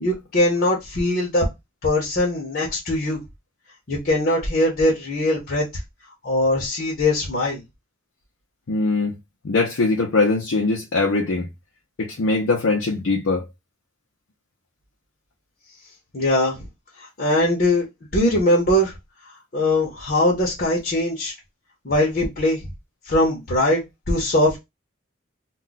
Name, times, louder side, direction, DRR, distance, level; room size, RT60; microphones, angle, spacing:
voice 1, 0.0-1.4 1.8-3.2 3.9-5.6 6.2-7.6 16.1-16.6 17.2-17.8 18.1-18.9 19.5-21.3 21.8-22.6 23.1-23.8 24.1-24.6, left 1 dB, 50° left, 0.8 m, -21 dB
voice 2, 8.7-9.1 9.4-11.5 12.0-13.4, left 3 dB, 85° left, 0.6 m, -21 dB
2.3 x 2.2 x 3.8 m
head